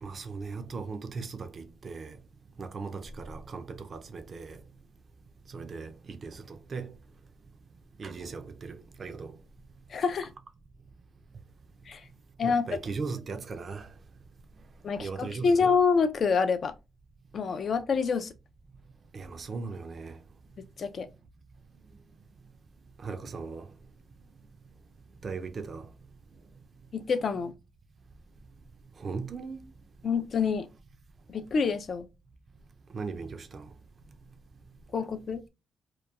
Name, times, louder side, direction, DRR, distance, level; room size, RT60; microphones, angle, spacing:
voice 1, 0.0-2.2 2.6-4.6 5.5-6.9 8.0-9.3 12.4-13.9 15.0-15.7 19.1-20.2 23.0-23.7 25.2-25.8 29.0-29.6 32.9-33.7, right 4 dB, 45° right, 0.4 m, -38 dB
voice 2, 9.9-10.3 11.9-12.0 12.4-12.6 14.8-16.7 17.3-18.3 20.8-21.1 26.9-27.5 30.0-30.7 31.3-32.1 34.9-35.4, left 5 dB, 50° left, 0.3 m, -27 dB
2.8 x 2.2 x 2.2 m
cardioid pair, 90°, 0 cm